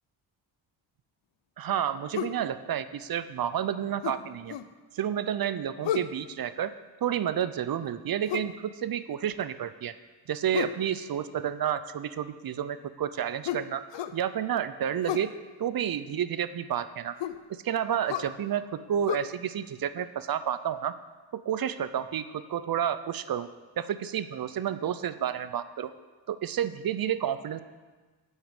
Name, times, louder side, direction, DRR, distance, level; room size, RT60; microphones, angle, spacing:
voice 1, 1.6-4.6 4.9-6.7 7.0-9.9 10.3-13.8 14.1-17.2 17.5-20.9 21.3-23.5 23.8-25.9 26.3-27.6, right 9 dB, 50° right, 13 dB, 0.6 m, -30 dB
sound 1, 2.1-2.4 4.0-4.7 5.8-6.2 8.3-8.5 10.5-10.8 13.4-14.2 15.0-15.3 17.2-17.4 18.1-18.3 19.1-19.2, left 11 dB, 65° left, 0.6 m, -32 dB
9.2 x 6.1 x 7.1 m, 1.3 s
cardioid pair, 95°, 47 cm